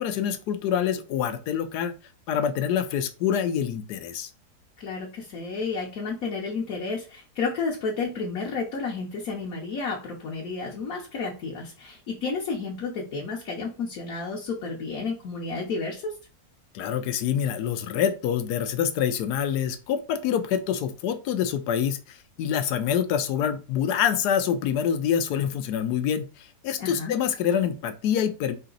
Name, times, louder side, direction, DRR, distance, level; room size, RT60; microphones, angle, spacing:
voice 1, 0.0-1.9 2.3-4.3 16.7-28.6, left 8 dB, 80° left, 10 dB, 1.2 m, -26 dB
voice 2, 4.8-16.1 26.8-27.1, left 4 dB, 65° left, -1 dB, 1.3 m, -31 dB
4.9 x 2.8 x 3.8 m, 0.34 s
omnidirectional pair, 1.7 m